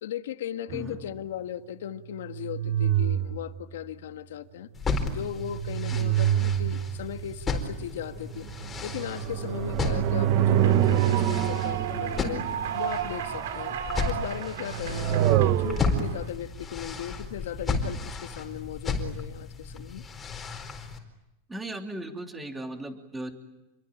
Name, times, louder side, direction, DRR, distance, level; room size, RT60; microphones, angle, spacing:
voice 1, 0.0-4.7 5.1-8.5 8.8-12.5 12.7-13.8 14.0-20.0, left 10 dB, 80° left, 9 dB, 1.7 m, -37 dB
sound 1, 0.7-1.0 2.2-3.7 5.1-7.4 8.1-13.2 14.5-16.2, right 11 dB, 45° right, 1.2 m, -27 dB
sound 2, 4.7-21.0, left 3 dB, 15° left, 4.3 m, -34 dB
Human voice / Clapping / Cheering, 10.3-16.3, right 9 dB, 75° right, 3.3 m, -35 dB
voice 2, 21.5-23.3, right 1 dB, 10° right, 4 dB, 3.0 m, -37 dB
28.5 x 23.0 x 9.0 m, 0.96 s
supercardioid pair, 145°, 0 cm